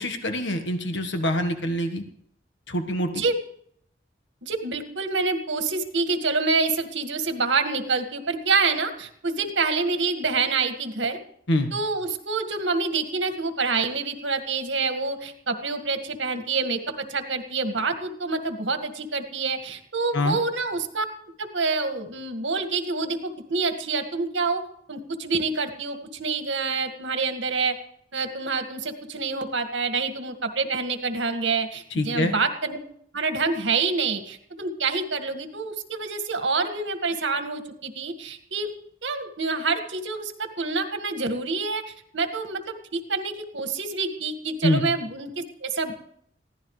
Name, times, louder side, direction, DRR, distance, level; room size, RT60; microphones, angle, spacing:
voice 1, 0.0-2.0 2.7-3.2 11.5-11.7 20.1-20.4 31.9-32.3 44.6-44.9, left 1 dB, 75° left, 6 dB, 1.5 m, -25 dB
voice 2, 4.4-11.2 11.7-21.1 21.4-24.6 24.9-27.8 28.1-32.8 33.1-38.7 39.0-45.9, right 4 dB, 80° right, 6 dB, 2.0 m, -27 dB
22.0 x 16.0 x 3.3 m, 0.67 s
head